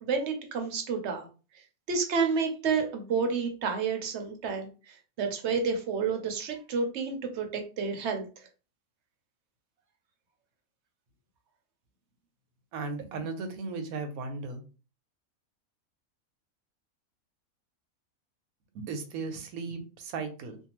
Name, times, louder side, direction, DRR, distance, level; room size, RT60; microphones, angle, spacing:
voice 1, 0.0-1.3 1.9-8.3, right 5 dB, 60° right, 4 dB, 0.8 m, -30 dB
voice 2, 12.7-14.6 18.7-20.6, right 4 dB, 85° right, 7 dB, 1.1 m, -36 dB
2.6 x 2.3 x 2.9 m, 0.34 s
omnidirectional pair, 1.5 m